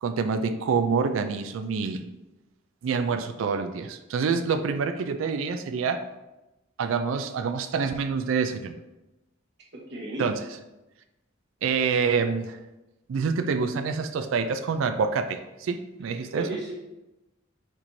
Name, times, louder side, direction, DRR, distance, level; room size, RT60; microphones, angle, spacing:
voice 1, 0.0-2.0 2.8-6.0 6.8-8.8 10.2-10.4 11.6-12.6 13.1-16.5, right 5 dB, 80° right, 8 dB, 0.4 m, -26 dB
voice 2, 9.7-10.3 16.1-16.7, right 2 dB, 60° right, -3 dB, 1.2 m, -35 dB
4.5 x 4.3 x 2.6 m, 0.99 s
head